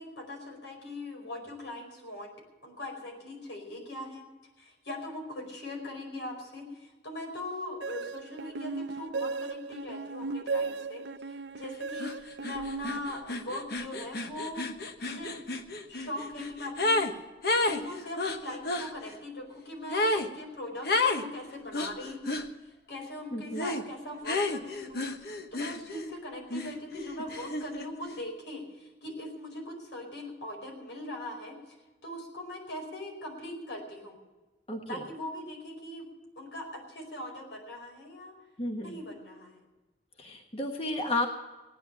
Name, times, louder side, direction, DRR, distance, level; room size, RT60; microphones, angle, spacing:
voice 1, 0.0-2.3 2.6-4.2 4.6-14.7 15.0-15.4 15.9-17.2 17.6-20.9 21.1-31.6 32.0-34.2 34.9-36.0 36.4-38.3 38.8-39.6, left 1 dB, 90° left, 2 dB, 5.0 m, -41 dB
sound 1, 7.8-13.6, right 4 dB, 80° right, 0.5 m, -36 dB
sound 2, 12.0-12.1 12.4-17.1 17.4-18.9 19.9-20.3 20.8-21.2 21.7-22.5 23.5-23.8 24.2-26.1 26.5-27.9, left 2 dB, 60° left, 1.1 m, -31 dB
voice 2, 23.3-23.6 34.7-35.1 38.6-39.0 40.2-41.3, left 1 dB, 35° left, 2 dB, 1.3 m, -32 dB
18.0 x 10.0 x 6.9 m, 1.1 s
head